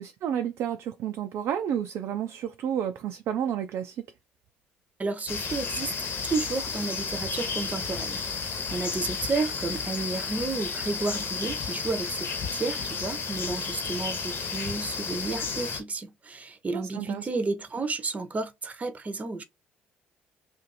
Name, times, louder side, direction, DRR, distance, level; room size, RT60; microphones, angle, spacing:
voice 1, 0.0-4.1 16.7-17.3, right 9 dB, 65° right, 0.4 m, -31 dB
voice 2, 5.0-5.9 6.2-8.4 8.7-19.4, right 3 dB, 30° right, 0.8 m, -32 dB
sound 1, 5.3-15.8, left 5 dB, 50° left, 1.1 m, -32 dB
2.6 x 2.5 x 4.0 m
hypercardioid pair, 60°, 5 cm